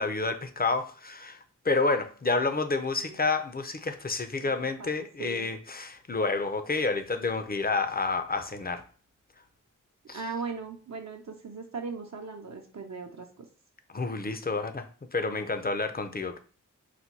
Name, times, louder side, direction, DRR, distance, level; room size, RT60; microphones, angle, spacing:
voice 1, 0.0-8.8 10.1-10.2 13.9-16.4, left 3 dB, 30° left, 0.5 m, -29 dB
voice 2, 4.4-4.9 5.2-5.5 10.1-13.5, right 4 dB, 60° right, 0.6 m, -39 dB
4.1 x 2.2 x 4.4 m
wide cardioid pair, 65°, 32 cm